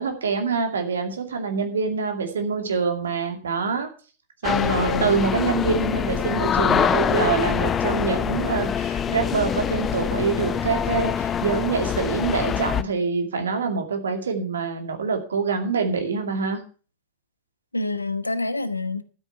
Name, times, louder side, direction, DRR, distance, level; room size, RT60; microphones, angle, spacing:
voice 1, 0.0-3.9 4.4-16.6, right 5 dB, 70° right, 2.3 m, -25 dB
sound 1, 4.4-12.8, left 8 dB, 25° left, 0.8 m, -24 dB
voice 2, 4.5-5.2 17.7-19.0, left 3 dB, 85° left, 1.0 m, -27 dB
12.5 x 8.3 x 5.7 m
figure-of-eight pair, 90°, 0 cm